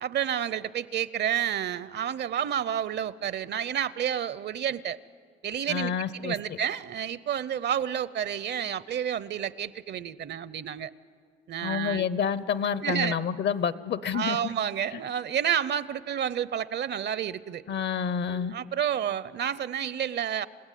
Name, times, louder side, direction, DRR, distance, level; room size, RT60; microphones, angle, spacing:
voice 1, 0.0-5.0 5.4-10.9 11.5-12.0 12.8-13.2 14.1-17.6 18.3-20.5, right 9 dB, 60° right, 18 dB, 0.7 m, -30 dB
voice 2, 5.7-6.6 11.6-14.5 14.9-15.0 17.7-18.5, left 7 dB, 60° left, 16 dB, 0.9 m, -29 dB
28.0 x 16.0 x 9.2 m, 2.1 s
cardioid pair, 90°, 20 cm